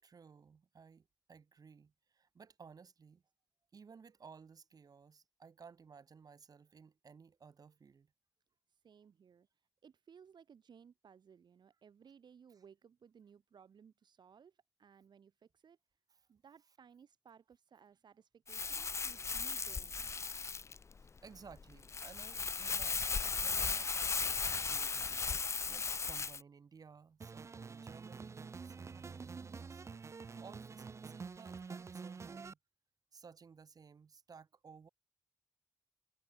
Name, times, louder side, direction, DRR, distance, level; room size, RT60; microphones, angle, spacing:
voice 1, 0.0-3.2 3.7-8.1 16.1-16.2 21.0-25.2 25.7-29.8 30.4-32.6 33.1-34.9, right 5 dB, 60° right, 4.1 m, -58 dB
voice 2, 8.7-9.5 9.8-15.8 16.3-20.1, right 7 dB, 85° right, 2.6 m, -61 dB
Crumpling crinkling, 18.5-26.4, left 5 dB, 40° left, 0.6 m, -36 dB
sound 1, 27.2-32.5, right 5 dB, 40° right, 0.6 m, -47 dB
wide cardioid pair, 150°, 7 cm